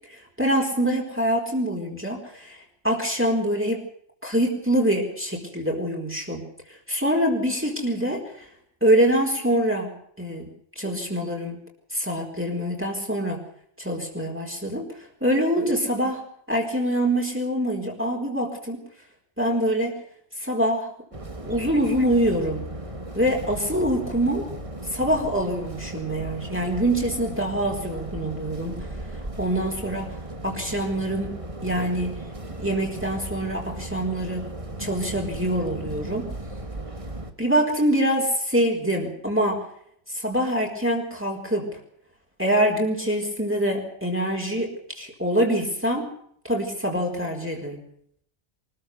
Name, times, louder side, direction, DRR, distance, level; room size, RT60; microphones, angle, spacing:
voice 1, 0.1-2.6 2.8-3.8 4.2-8.4 8.8-9.9 10.2-10.5 10.8-11.6 11.9-13.4 13.8-14.9 15.2-16.2 16.5-18.8 19.4-20.0 20.4-20.9 21.4-22.6 23.1-24.5 24.9-28.8 29.4-30.2 30.4-32.1 32.6-34.4 34.8-36.3 37.4-39.7 40.1-41.7 42.4-46.1 46.4-47.8, right 1 dB, 10° right, -1 dB, 4.4 m, -25 dB
sound 1, 21.1-37.3, right 1 dB, 30° right, 2.2 m, -36 dB
24.0 x 14.5 x 8.1 m, 0.67 s
omnidirectional pair, 1.0 m